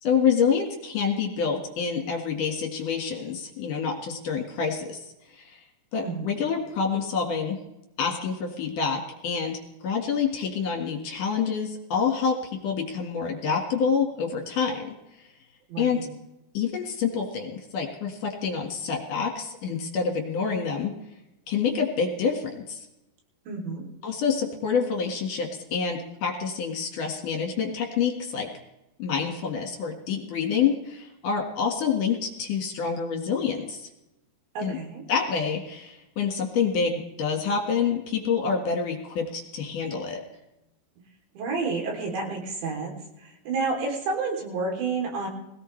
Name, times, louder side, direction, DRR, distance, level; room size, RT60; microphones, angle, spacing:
voice 1, 0.0-5.6 5.9-7.6 8.0-14.9 15.8-16.1 16.5-20.9 21.5-22.9 24.0-28.5 29.0-33.9 34.6-34.8 35.1-40.2, left 6 dB, 55° left, 2 dB, 2.8 m, -27 dB
voice 2, 6.0-6.4 15.7-16.1 23.5-23.9 34.6-35.1 41.4-42.9 43.2-45.3, right 4 dB, 85° right, 0 dB, 5.5 m, -30 dB
21.5 x 16.5 x 3.3 m, 0.90 s
omnidirectional pair, 5.0 m